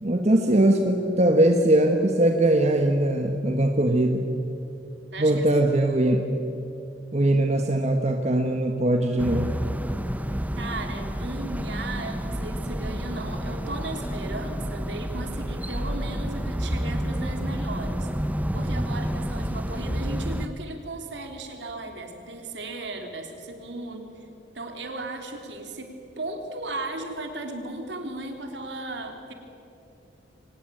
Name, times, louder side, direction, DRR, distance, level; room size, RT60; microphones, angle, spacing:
voice 1, 0.0-4.3 5.2-6.2 7.1-9.5, right 1 dB, 40° right, 4 dB, 1.3 m, -21 dB
voice 2, 5.1-5.4 10.6-18.1 18.5-24.2 24.5-29.3, right 2 dB, 70° right, 4 dB, 3.3 m, -36 dB
sound 1, 9.2-20.5, equal, 10° right, 0.8 m, -30 dB
24.0 x 19.0 x 9.2 m, 2.7 s
head